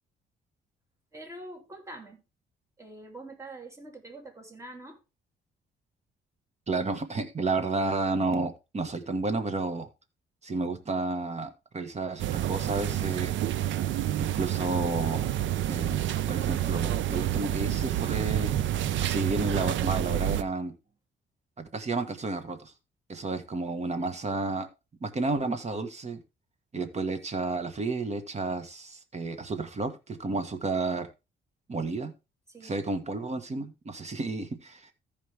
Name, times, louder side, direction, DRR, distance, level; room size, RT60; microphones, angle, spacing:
voice 1, 1.1-2.2 2.8-5.0 32.5-32.8, right 2 dB, 15° right, 2.9 m, -45 dB
voice 2, 6.7-9.9 10.4-13.3 13.7-13.8 14.2-15.3 15.7-16.0 16.3-18.5 19.0-20.7 21.6-22.7 23.1-24.7 25.0-26.2 26.7-31.1 31.7-32.1 32.6-34.9, right 3 dB, 35° right, 1.6 m, -31 dB
sound 1, 12.2-20.4, right 12 dB, 75° right, 0.6 m, -28 dB
14.5 x 5.2 x 3.5 m
cardioid pair, 90°, 20 cm